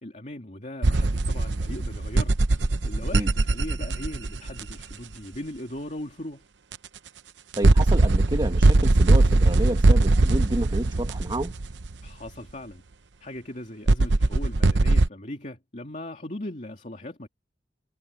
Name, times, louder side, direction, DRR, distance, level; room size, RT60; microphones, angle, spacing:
voice 1, 0.0-6.5 12.0-12.8 13.2-17.3, left 1 dB, 45° left, 2.8 m, -39 dB
sound 1, 0.8-4.9 6.7-6.8 7.5-12.1 13.9-15.1, right 2 dB, 80° right, 0.8 m, -20 dB
voice 2, 7.5-11.5, right 1 dB, 25° right, 1.7 m, -29 dB
head